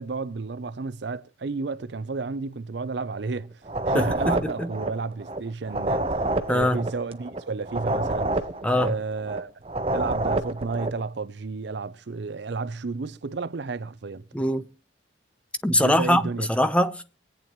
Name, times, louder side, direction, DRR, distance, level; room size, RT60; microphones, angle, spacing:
voice 1, 0.0-8.4 8.7-9.5 9.9-14.2 15.8-16.5, right 4 dB, 65° right, 0.6 m, -32 dB
sound 1, 3.6-11.0, right 2 dB, 30° right, 0.9 m, -28 dB
voice 2, 3.9-4.7 6.5-6.8 8.6-8.9 14.3-14.7 15.6-17.0, left 1 dB, 5° left, 0.7 m, -22 dB
25.5 x 8.9 x 3.0 m
head